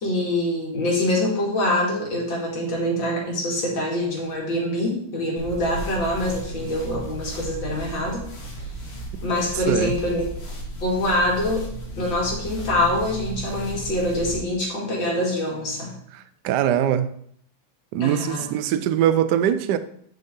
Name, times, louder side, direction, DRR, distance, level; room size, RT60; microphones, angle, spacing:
voice 1, 0.0-8.2 9.2-10.2 10.8-11.6 12.0-15.9 18.0-18.4, left 1 dB, 60° left, 3.0 m, -25 dB
sound 1, 5.4-14.4, right 1 dB, 85° left, 2.4 m, -34 dB
voice 2, 16.1-17.1 17.9-19.8, right 10 dB, 80° right, 0.9 m, -22 dB
9.2 x 5.4 x 3.8 m
omnidirectional pair, 2.4 m